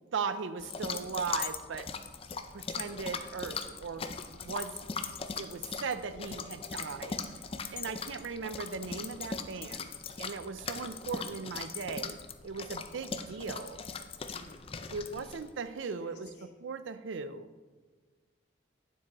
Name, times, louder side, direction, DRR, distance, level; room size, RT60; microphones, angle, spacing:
voice 1, 0.1-1.9 2.5-4.9 5.4-7.4 7.7-9.9 10.2-12.2 12.4-13.8 14.9-16.3 16.6-17.5, right 5 dB, 80° right, 12 dB, 0.5 m, -38 dB
sound 1, 0.6-15.5, left 5 dB, 30° left, 0.4 m, -40 dB
voice 2, 6.1-7.2 14.3-14.7 16.0-16.4, left 1 dB, 60° left, -5 dB, 2.4 m, -54 dB
9.4 x 7.3 x 3.0 m, 1.4 s
head